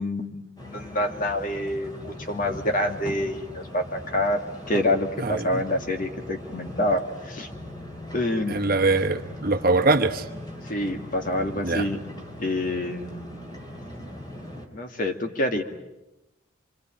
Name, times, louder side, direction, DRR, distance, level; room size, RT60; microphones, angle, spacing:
voice 1, 0.0-4.4 4.7-7.5 8.1-8.6 10.6-12.0 12.4-13.3 14.7-15.6, left 1 dB, 40° left, 2.3 m, -27 dB
sound 1, 0.6-14.7, left 1 dB, 20° left, 3.6 m, -40 dB
voice 2, 5.2-5.6 8.5-10.2 11.6-11.9, right 3 dB, 45° right, 1.2 m, -23 dB
26.0 x 25.5 x 9.1 m
head